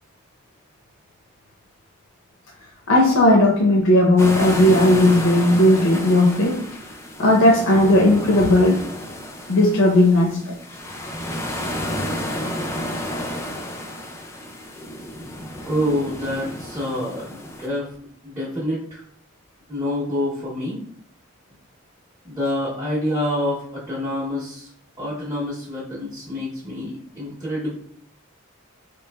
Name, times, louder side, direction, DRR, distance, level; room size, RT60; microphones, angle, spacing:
voice 1, 2.9-6.6 7.2-8.8 9.5-10.6, left 1 dB, 70° left, -2 dB, 0.6 m, -16 dB
sound 1, 4.2-17.7, left 1 dB, 15° left, 0.3 m, -31 dB
voice 2, 15.6-18.0 18.2-19.0 19.7-20.8 22.2-24.7 25.0-27.7, left 1 dB, 15° right, -7 dB, 0.7 m, -27 dB
4.1 x 3.0 x 2.2 m, 0.63 s
head